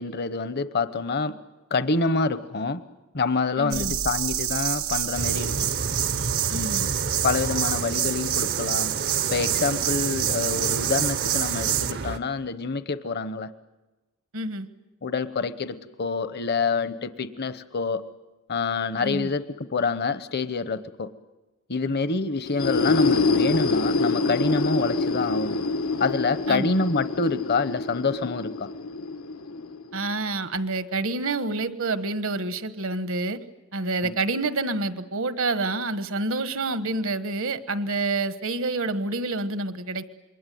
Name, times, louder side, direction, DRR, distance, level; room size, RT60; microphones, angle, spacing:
voice 1, 0.0-1.4 1.7-2.8 3.1-5.5 7.2-8.9 9.3-13.5 15.0-18.0 18.5-19.4 19.7-21.1 21.7-25.6 26.0-28.7 34.0-34.1, left 4 dB, 50° left, 12 dB, 1.0 m, -27 dB
voice 2, 3.6-3.9 6.5-6.9 14.3-14.7 19.0-19.3 26.5-26.7 29.9-33.4 33.7-40.0, right 2 dB, 65° right, 12 dB, 1.4 m, -28 dB
sound 1, 3.7-11.9, right 12 dB, 85° right, 1.5 m, -27 dB
sound 2, 5.2-12.2, right 3 dB, 50° right, 0.8 m, -32 dB
sound 3, 22.5-30.1, left 3 dB, 85° left, 1.5 m, -26 dB
27.5 x 22.5 x 9.3 m, 1.1 s
head